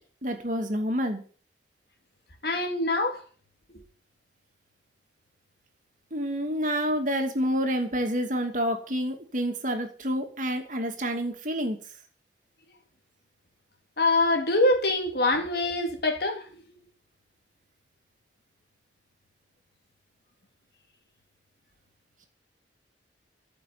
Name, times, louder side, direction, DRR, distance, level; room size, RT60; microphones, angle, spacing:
voice 1, 0.2-1.2 6.1-11.8, equal, 45° right, 2.7 m, -28 dB
voice 2, 2.4-3.2 14.0-16.5, left 2 dB, 55° left, 3.0 m, -24 dB
14.0 x 7.0 x 9.6 m
head